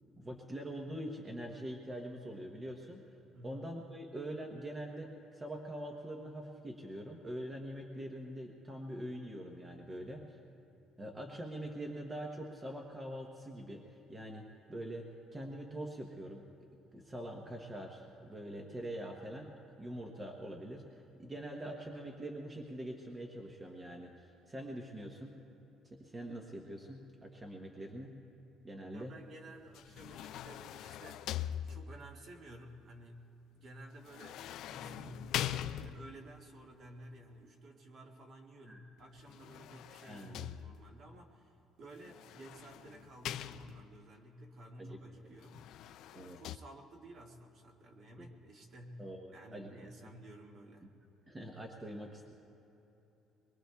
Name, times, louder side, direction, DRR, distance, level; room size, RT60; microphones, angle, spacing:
voice 1, 0.2-3.0 3.4-10.3 11.0-15.1 15.3-16.4 16.9-19.5 19.8-25.4 25.9-28.2 28.6-29.2 38.7-38.8 40.0-40.5 44.8-45.0 45.2-45.3 46.1-46.4 48.2-48.3 49.0-49.7 51.3-52.3, right 1 dB, 15° right, 1 dB, 0.9 m, -44 dB
voice 2, 3.3-3.6 28.9-31.3 31.6-33.3 33.5-35.4 35.7-45.7 46.1-51.0, right 1 dB, 45° right, 0 dB, 1.8 m, -53 dB
sound 1, 29.7-32.2 34.0-36.3 39.2-41.0 42.0-44.0 45.4-46.6, left 11 dB, 65° left, 0.3 m, -42 dB
24.5 x 22.5 x 2.3 m, 3.0 s
cardioid pair, 160°, 0 cm